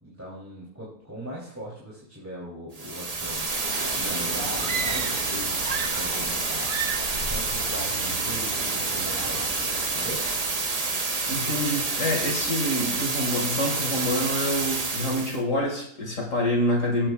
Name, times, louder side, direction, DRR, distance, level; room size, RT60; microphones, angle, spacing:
voice 1, 0.0-9.6 9.9-10.2, equal, 10° right, -7 dB, 3.1 m, -40 dB
sound 1, 2.7-15.4, right 3 dB, 30° right, 0.9 m, -28 dB
sound 2, 3.1-10.9, right 1 dB, 80° right, 4.1 m, -39 dB
sound 3, 4.6-5.3 5.6-6.4 6.6-7.2, right 7 dB, 60° right, 0.5 m, -33 dB
voice 2, 11.2-17.1, left 1 dB, 60° left, 0 dB, 2.5 m, -27 dB
18.0 x 9.0 x 2.4 m, 0.65 s
omnidirectional pair, 1.6 m